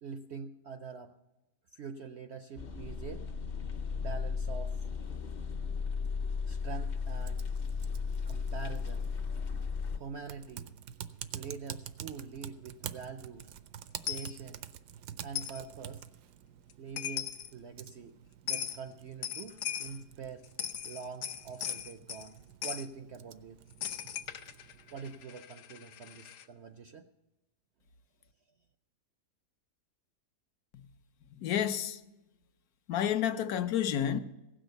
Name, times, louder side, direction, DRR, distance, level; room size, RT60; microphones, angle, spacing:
voice 1, 0.0-1.2 1.7-3.3 3.9-4.8 6.5-7.5 8.3-9.1 10.0-10.7 11.3-13.5 14.1-14.6 15.2-16.0 16.8-18.2 18.4-20.5 20.8-23.6 24.9-27.1, right 5 dB, 65° right, 0.6 m, -44 dB
sound 1, 2.6-10.0, left 5 dB, 45° left, 0.5 m, -35 dB
Typing, 7.2-25.2, right 10 dB, 85° right, 1.2 m, -48 dB
Coin (dropping), 14.1-14.3 15.4-15.6 16.7-16.8 17.0-17.5 18.5-18.8 19.2-20.0 20.4-22.3 22.6-22.9 23.8-26.5, left 10 dB, 90° left, 1.3 m, -38 dB
voice 2, 31.3-32.0 32.9-34.2, left 10 dB, 70° left, 1.1 m, -30 dB
16.0 x 6.3 x 7.8 m
omnidirectional pair, 1.7 m